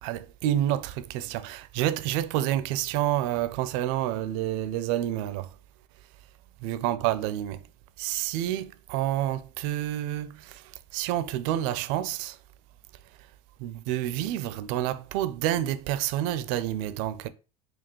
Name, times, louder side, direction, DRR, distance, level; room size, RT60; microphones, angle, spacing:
voice 1, 0.0-5.5 6.6-7.6 8.0-12.4 13.6-17.3, right 12 dB, 65° right, 0.4 m, -29 dB
4.3 x 2.3 x 3.0 m
hypercardioid pair, 90°, 19 cm